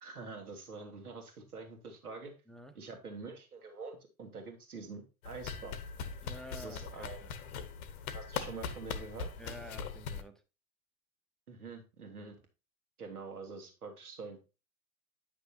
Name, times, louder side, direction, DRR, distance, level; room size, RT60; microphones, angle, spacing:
voice 1, 0.0-2.3 2.8-5.8 6.5-7.3 8.1-9.3 11.5-12.4 13.0-14.4, right 4 dB, 90° right, 3 dB, 1.9 m, -46 dB
sound 1, 5.2-10.2, left 6 dB, 75° left, 1.1 m, -41 dB
voice 2, 6.2-7.3 9.4-10.4, equal, ahead, 6 dB, 0.7 m, -49 dB
9.3 x 6.1 x 2.7 m, 0.29 s
hypercardioid pair, 90°, 44 cm